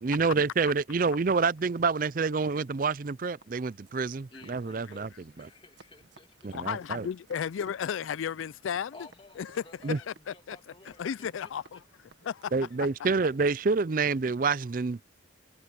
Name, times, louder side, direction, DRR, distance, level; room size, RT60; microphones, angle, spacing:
voice 1, 0.0-5.1 5.4-5.5 6.4-7.1 9.8-10.0 12.5-15.0, right 4 dB, 45° right, 0.4 m, -28 dB
sound 1, 3.4-12.7, right 3 dB, 70° right, 1.6 m, -60 dB
voice 2, 4.3-6.6 8.9-11.3 11.7-11.8, left 2 dB, 25° left, 2.3 m, -54 dB
voice 3, 6.5-8.9 9.4-10.6 10.9-11.8 12.2-12.5, left 8 dB, 85° left, 0.4 m, -34 dB
head